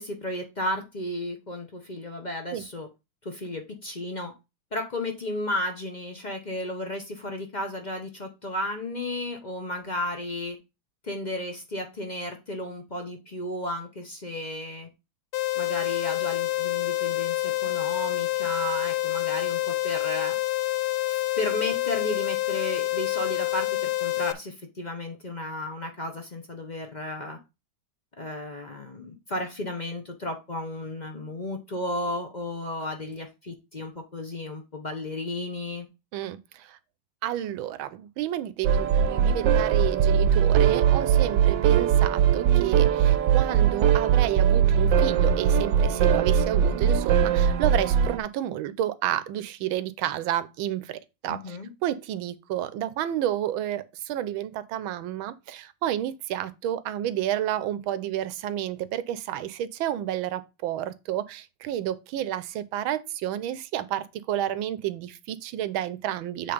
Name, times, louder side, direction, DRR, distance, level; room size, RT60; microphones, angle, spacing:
voice 1, 0.0-2.9 3.2-4.3 4.7-10.6 11.0-14.9 15.6-20.4 21.1-27.4 28.2-35.9 51.3-51.7, left 1 dB, 35° left, 0.7 m, -33 dB
sound 1, 15.3-24.3, left 18 dB, 70° left, 1.0 m, -27 dB
voice 2, 36.1-36.8 37.2-66.5, right 12 dB, 90° right, 1.5 m, -30 dB
sound 2, 38.6-48.2, right 8 dB, 70° right, 1.3 m, -21 dB
7.8 x 3.6 x 5.0 m
omnidirectional pair, 2.1 m